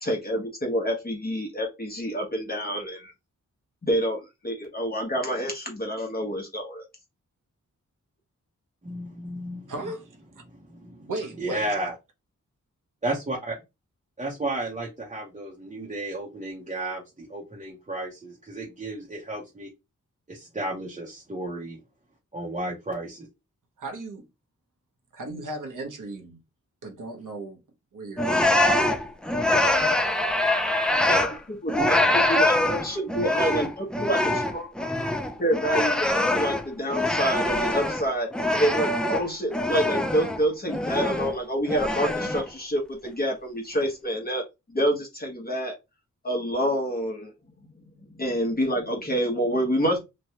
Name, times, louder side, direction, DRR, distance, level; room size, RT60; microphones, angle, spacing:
voice 1, 0.0-3.1 3.8-6.8 31.1-31.2 31.5-34.9 35.4-44.4 44.7-45.7 46.2-47.3 48.1-50.0, equal, 30° left, 0.9 m, -27 dB
voice 2, 8.8-9.7 10.5-11.1 11.4-12.0 13.0-13.6 14.2-19.7 20.3-21.8 22.3-23.2, right 1 dB, 20° right, 0.8 m, -33 dB
voice 3, 9.7-10.2 11.1-11.6 23.8-24.3 25.1-26.4 26.8-27.6 27.9-28.6 30.2-30.3 32.9-33.0, right 2 dB, 75° right, 0.9 m, -36 dB
sound 1, 28.2-31.4 31.7-38.0 38.3-40.4 40.7-41.4 41.7-42.5, left 1 dB, 5° left, 0.4 m, -24 dB
3.0 x 2.2 x 2.8 m
wide cardioid pair, 95°, 32 cm